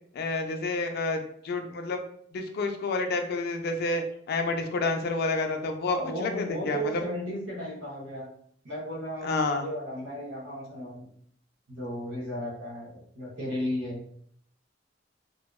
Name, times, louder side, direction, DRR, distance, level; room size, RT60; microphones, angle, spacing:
voice 1, 0.1-2.0 2.3-7.0 9.2-9.7, left 3 dB, 55° left, 5 dB, 0.4 m, -29 dB
voice 2, 5.9-8.3 8.6-11.1 11.7-14.0, equal, 65° right, -3 dB, 0.8 m, -35 dB
2.7 x 2.2 x 2.2 m, 0.63 s
head